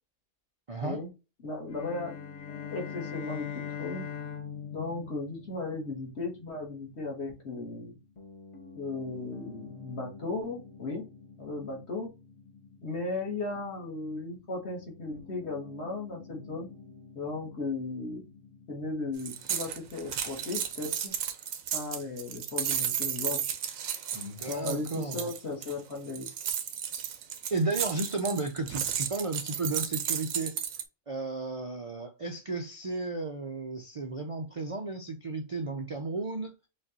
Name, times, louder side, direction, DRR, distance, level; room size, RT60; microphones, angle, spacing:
voice 1, 0.7-1.0 24.1-25.3 27.5-30.5 31.1-36.5, right 3 dB, 60° right, 0.3 m, -33 dB
voice 2, 1.4-2.2 2.7-4.1 4.7-8.0 8.8-11.0 11.4-12.1 12.8-16.7 17.2-18.2 18.7-21.1 21.7-23.4 24.5-26.3, left 3 dB, 55° left, 1.8 m, -36 dB
sound 1, 1.7-6.1, left 8 dB, 75° left, 1.1 m, -41 dB
Piano, 1.7-21.1, left 4 dB, 30° left, 0.6 m, -51 dB
sound 2, 19.2-30.8, right 9 dB, 80° right, 1.1 m, -33 dB
5.2 x 2.4 x 2.7 m
omnidirectional pair, 1.4 m